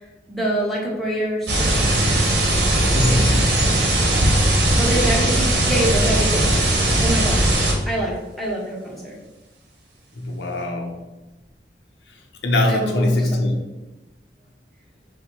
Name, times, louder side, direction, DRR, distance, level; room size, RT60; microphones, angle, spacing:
voice 1, 0.3-2.4 4.5-6.5 7.0-7.5 7.9-9.2 12.7-13.6, right 1 dB, ahead, -4 dB, 0.8 m, -26 dB
sound 1, 1.5-7.7, right 1 dB, 65° right, 1.2 m, -18 dB
voice 2, 2.9-3.6 10.2-11.1 12.4-13.5, left 1 dB, 80° left, 3 dB, 0.7 m, -22 dB
5.4 x 2.1 x 4.6 m, 1.1 s
head